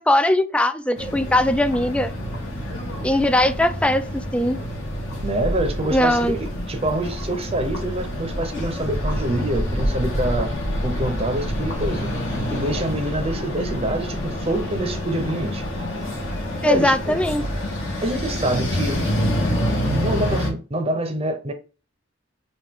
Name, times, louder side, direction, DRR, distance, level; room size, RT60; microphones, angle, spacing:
voice 1, 0.0-2.1 3.0-4.0 4.3-4.6 5.9-6.4 16.6-17.4, left 1 dB, 5° left, 0.3 m, -20 dB
sound 1, 0.9-20.5, equal, 75° left, 2.2 m, -27 dB
voice 2, 5.2-10.5 10.8-12.1 12.5-15.6 16.6-17.2 18.0-19.1 19.9-21.5, right 1 dB, 30° right, 0.7 m, -26 dB
4.8 x 2.4 x 3.6 m
head